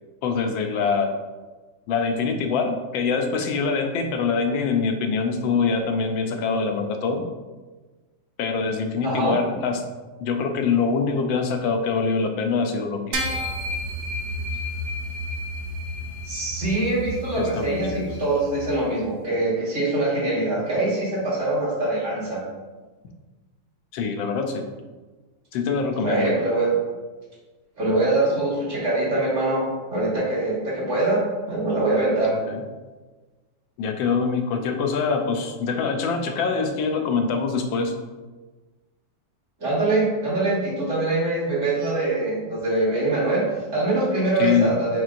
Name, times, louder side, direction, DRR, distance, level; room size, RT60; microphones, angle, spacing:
voice 1, 0.2-1.1 1.9-7.3 8.4-9.8 10.2-13.2 17.4-18.1 23.9-24.7 25.5-26.3 32.2-32.6 33.8-37.9 44.4-44.8, left 5 dB, 90° left, 5 dB, 1.3 m, -24 dB
voice 2, 9.0-9.4 16.2-22.4 26.0-26.8 27.8-29.7 29.9-32.3 39.6-45.0, right 2 dB, 45° right, -8 dB, 1.9 m, -23 dB
sound 1, 13.1-18.7, equal, 65° right, 0.7 m, -31 dB
4.5 x 4.2 x 2.4 m, 1.3 s
omnidirectional pair, 2.0 m